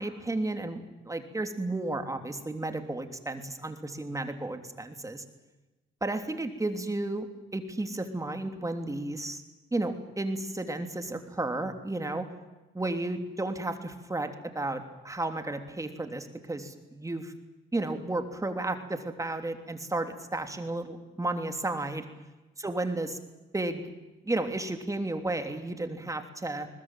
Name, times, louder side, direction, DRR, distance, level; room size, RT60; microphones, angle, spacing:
voice 1, 0.0-5.2 6.0-7.3 7.5-9.4 9.7-12.3 12.7-17.3 17.7-22.0 22.6-23.2 23.5-23.8 24.2-26.7, right 2 dB, 15° right, 6 dB, 3.2 m, -33 dB
21.5 x 21.0 x 9.2 m, 1.1 s
cardioid pair, 90°, 20 cm